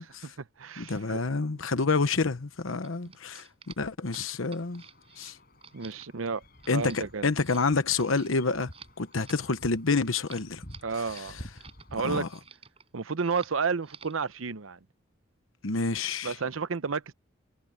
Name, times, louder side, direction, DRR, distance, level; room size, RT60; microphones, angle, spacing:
voice 1, 0.0-1.2 5.7-6.4 6.7-7.3 10.8-11.4 11.9-12.3 12.9-14.8 16.2-17.1, right 5 dB, 90° right, 0.8 m, -31 dB
voice 2, 0.8-4.8 5.2-5.4 6.7-8.7 9.0-10.6 11.1-11.4 12.0-12.3 15.6-16.4, left 4 dB, 85° left, 1.0 m, -28 dB
sound 1, 2.7-11.9 12.1-12.9 13.2-13.6 13.8-14.2, right 6 dB, 30° right, 5.5 m, -51 dB
sound 2, 4.5-12.2, equal, 45° left, 7.1 m, -51 dB
head